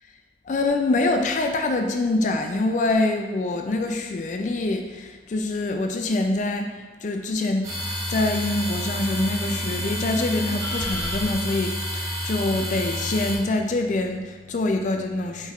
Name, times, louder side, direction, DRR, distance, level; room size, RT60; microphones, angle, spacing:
voice 1, 0.5-7.7 8.1-15.5, left 2 dB, 45° left, 5 dB, 0.3 m, -25 dB
sound 1, 7.6-13.4, equal, 20° right, 0.8 m, -29 dB
sound 2, 8.0-11.8, left 1 dB, 80° left, 1.4 m, -49 dB
5.2 x 3.4 x 2.4 m, 1.4 s
head